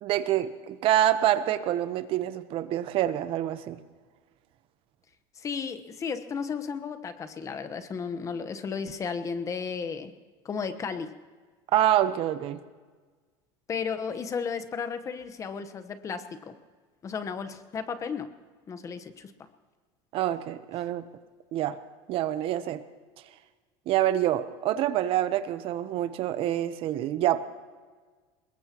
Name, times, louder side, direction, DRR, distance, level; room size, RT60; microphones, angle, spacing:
voice 1, 0.0-3.8 11.7-12.6 20.1-21.0 21.5-21.8 22.1-22.8 23.9-27.4, right 12 dB, 45° right, 12 dB, 0.9 m, -26 dB
voice 2, 5.4-10.1 10.4-11.1 13.7-16.5 17.0-18.3 18.7-19.3, left 6 dB, 25° left, 10 dB, 1.1 m, -34 dB
23.0 x 21.0 x 3.0 m, 1.4 s
supercardioid pair, 140°, 13 cm